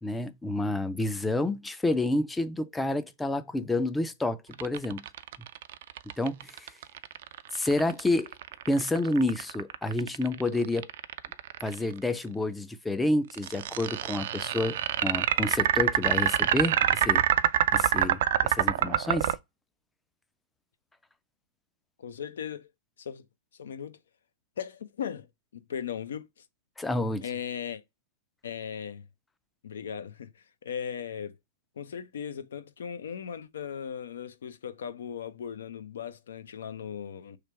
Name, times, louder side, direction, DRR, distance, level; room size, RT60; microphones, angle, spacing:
voice 1, 0.0-5.0 6.2-6.7 7.5-8.3 8.7-10.9 11.6-17.2 17.7-19.4 26.8-27.2, left 2 dB, 10° left, 0.4 m, -29 dB
sound 1, 4.5-11.8 13.3-19.4, right 11 dB, 65° right, 0.3 m, -26 dB
voice 2, 22.0-22.7 23.0-23.2 23.6-24.0 24.6-25.3 25.5-26.4 27.2-27.8 28.4-29.0 29.6-30.3 30.6-31.3 31.8-37.4, left 8 dB, 80° left, 0.6 m, -37 dB
3.3 x 2.5 x 4.3 m
hypercardioid pair, 130°, 0 cm